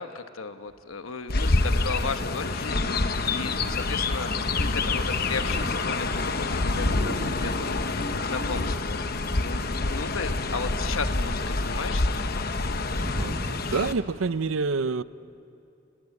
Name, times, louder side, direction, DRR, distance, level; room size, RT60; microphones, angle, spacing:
voice 1, 0.0-9.0 9.4-12.1, left 4 dB, 90° left, 9 dB, 1.2 m, -35 dB
sound 1, 0.7-0.8 1.3-2.8 3.5-3.7 4.0-4.5 4.8-7.7 8.8-9.3 9.6-11.9 12.2-12.3 12.7-13.8 14.4-14.5, equal, 45° right, 3.1 m, -38 dB
Chirp tweet, 1.3-13.9, left 3 dB, 50° left, 1.0 m, -27 dB
voice 2, 13.7-15.0, right 4 dB, 80° right, 16 dB, 0.6 m, -27 dB
29.0 x 19.0 x 8.7 m, 2.8 s
head